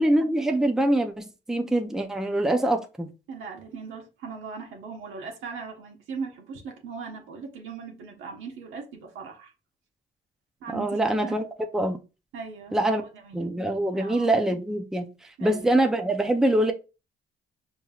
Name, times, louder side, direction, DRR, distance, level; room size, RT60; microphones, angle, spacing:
voice 1, 0.0-3.1 10.7-11.5 11.7-12.0 12.7-13.0 13.3-15.1 15.4-16.7, right 1 dB, 5° right, 0.6 m, -24 dB
voice 2, 3.3-9.5 10.6-11.4 12.3-13.6 13.9-14.3 15.4-15.8, right 5 dB, 80° right, 1.2 m, -39 dB
5.3 x 3.1 x 2.4 m
cardioid pair, 90°, 20 cm